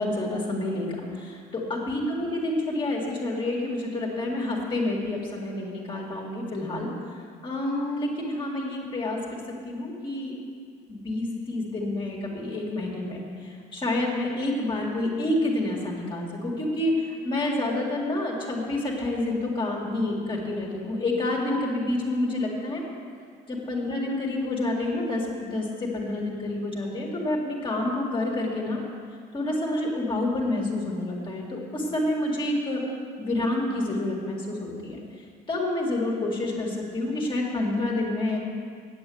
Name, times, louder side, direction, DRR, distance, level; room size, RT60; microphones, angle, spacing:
voice 1, 0.0-6.9 7.4-9.4 9.6-10.3 10.9-22.8 23.5-28.8 29.3-32.8 33.2-35.0 35.5-38.4, left 2 dB, 30° left, -2 dB, 2.1 m, -28 dB
9.0 x 7.9 x 7.8 m, 2.1 s
cardioid pair, 110°, 17 cm